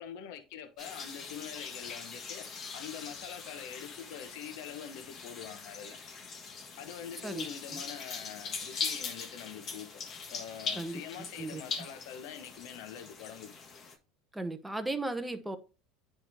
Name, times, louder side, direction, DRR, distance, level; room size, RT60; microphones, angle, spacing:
voice 1, 0.0-2.4 2.7-6.0 6.8-9.9 10.3-13.5, left 9 dB, 70° left, 1.1 m, -44 dB
sound 1, 0.8-14.0, left 5 dB, 40° left, 1.5 m, -41 dB
voice 2, 11.4-11.9 14.3-15.6, right 2 dB, 5° right, 1.0 m, -36 dB
9.6 x 3.5 x 3.5 m
supercardioid pair, 100°, 0 cm